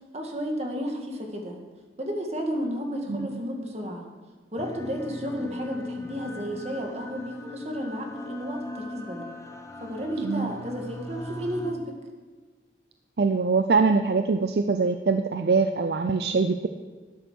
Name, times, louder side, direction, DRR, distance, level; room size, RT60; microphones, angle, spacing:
voice 1, 0.1-1.6 2.0-4.0 4.5-9.3 9.8-12.0, equal, 35° right, 2 dB, 1.9 m, -32 dB
voice 2, 3.1-3.4 10.2-10.5 13.2-16.7, right 4 dB, 65° right, 7 dB, 0.5 m, -23 dB
sound 1, 4.6-11.7, left 2 dB, 20° left, 0.9 m, -39 dB
12.5 x 9.3 x 6.2 m, 1.4 s
head